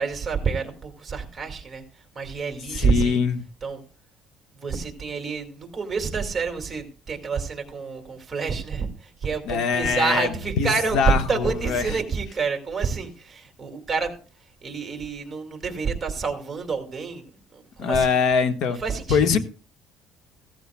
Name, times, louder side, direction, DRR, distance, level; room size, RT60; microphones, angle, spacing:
voice 1, 0.0-3.2 3.6-3.9 4.5-14.2 14.6-18.2 18.6-19.4, right 5 dB, 20° right, 2.1 m, -28 dB
voice 2, 2.7-3.4 9.5-10.3 10.6-11.9 17.8-18.8 19.1-19.4, left 6 dB, 65° left, 1.3 m, -22 dB
15.5 x 14.5 x 2.2 m
cardioid pair, 140°, 0 cm